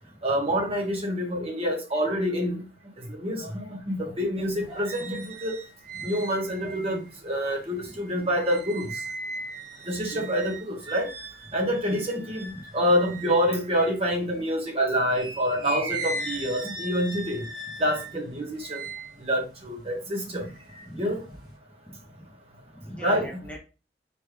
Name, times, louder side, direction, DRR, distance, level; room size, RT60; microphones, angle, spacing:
voice 1, 0.2-2.6 3.1-5.6 6.0-8.9 9.9-11.1 11.5-17.4 17.8-18.8 19.2-20.5 21.0-21.2 23.0-23.4, equal, 35° right, 1.2 m, -27 dB
sound 1, 4.4-14.5 15.0-20.6 20.9-21.5, right 2 dB, 55° right, 1.9 m, -39 dB
voice 2, 21.9-22.3 22.8-23.6, equal, 5° left, 0.8 m, -41 dB
4.5 x 3.2 x 3.3 m
head